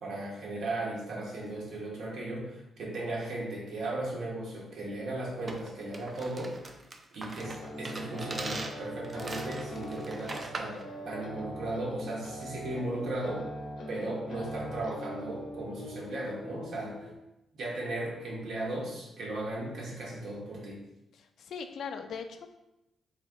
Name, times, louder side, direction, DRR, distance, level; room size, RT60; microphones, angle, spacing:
voice 1, 0.0-6.6 7.1-10.8 11.0-13.5 13.9-17.1 17.5-20.8, right 2 dB, 70° right, -3 dB, 1.0 m, -36 dB
sound 1, 5.5-10.8, right 2 dB, 30° right, 0.3 m, -41 dB
sound 2, 7.4-17.2, equal, 90° left, 0.7 m, -41 dB
voice 2, 21.1-22.5, left 6 dB, 65° left, 7 dB, 0.4 m, -40 dB
4.1 x 2.7 x 3.4 m, 0.90 s
wide cardioid pair, 155°, 0 cm